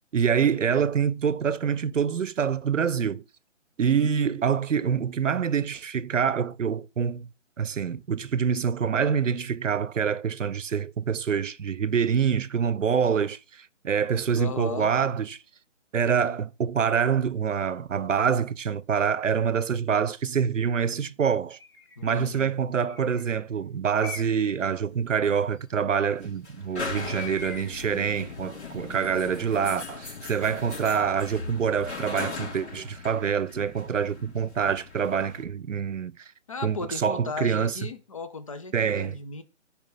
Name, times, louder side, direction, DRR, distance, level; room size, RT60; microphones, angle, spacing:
voice 1, 0.1-3.2 3.8-7.3 7.6-15.4 15.9-21.6 22.0-36.1 36.6-37.8 38.7-39.2, right 7 dB, 75° right, 0.8 m, -26 dB
voice 2, 14.3-14.9 22.0-22.5 36.5-39.4, left 4 dB, 25° left, 0.8 m, -35 dB
Bird, 21.6-22.0 22.8-23.4 24.0-24.6 26.9-27.9, left 4 dB, 45° left, 2.2 m, -42 dB
sound 1, 24.8-35.4, left 4 dB, 60° left, 3.9 m, -39 dB
10.5 x 4.9 x 5.6 m
figure-of-eight pair, 160°, 38 cm